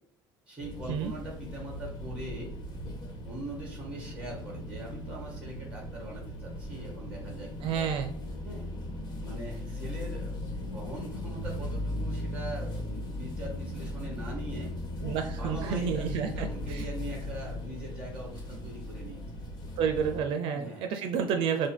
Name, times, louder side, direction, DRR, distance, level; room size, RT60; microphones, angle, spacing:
voice 1, 0.5-2.5 3.2-7.9 8.4-8.7 9.2-14.7 15.3-19.2 20.1-20.9, right 1 dB, 15° right, -1 dB, 2.0 m, -42 dB
sound 1, 0.6-20.2, left 1 dB, 45° left, 1.2 m, -38 dB
voice 2, 7.6-8.1 15.0-16.9 19.8-21.7, right 7 dB, 70° right, 6 dB, 0.5 m, -30 dB
6.2 x 2.2 x 3.4 m, 0.62 s
cardioid pair, 155°, 9 cm